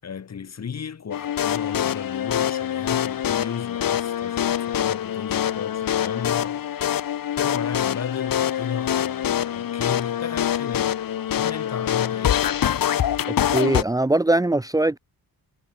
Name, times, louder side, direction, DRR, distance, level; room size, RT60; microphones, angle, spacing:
voice 1, 0.0-6.7 7.4-11.0 11.3-12.4, left 7 dB, 45° left, 6.2 m, -34 dB
sound 1, 1.1-13.8, left 10 dB, 65° left, 2.3 m, -25 dB
voice 2, 13.5-15.0, right 2 dB, 10° right, 1.6 m, -21 dB
wide cardioid pair, 150°, 37 cm